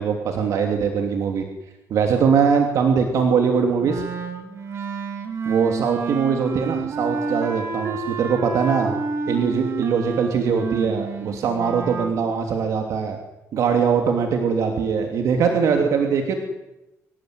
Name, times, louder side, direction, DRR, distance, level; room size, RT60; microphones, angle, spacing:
voice 1, 0.0-1.4 1.9-4.0 5.4-9.0 9.3-13.2 13.5-16.4, right 6 dB, 70° right, 3 dB, 2.9 m, -21 dB
Wind instrument woodwind instrument, 3.8-12.1, right 4 dB, 50° right, 3.2 m, -29 dB
25.5 x 18.5 x 9.7 m, 0.97 s
wide cardioid pair, 175°, 6 cm